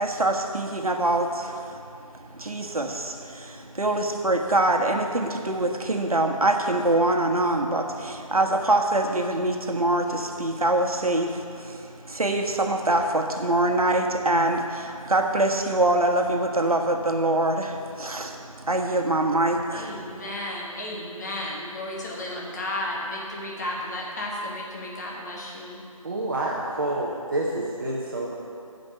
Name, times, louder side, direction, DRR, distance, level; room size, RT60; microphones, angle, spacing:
voice 1, 0.0-1.9 2.1-20.2, right 2 dB, 80° right, 4 dB, 1.2 m, -24 dB
voice 2, 19.7-25.8, left 1 dB, 30° left, -4 dB, 1.3 m, -33 dB
voice 3, 26.0-28.4, right 2 dB, 35° right, -4 dB, 1.0 m, -28 dB
11.0 x 5.3 x 6.9 m, 2.5 s
figure-of-eight pair, 165°, 18 cm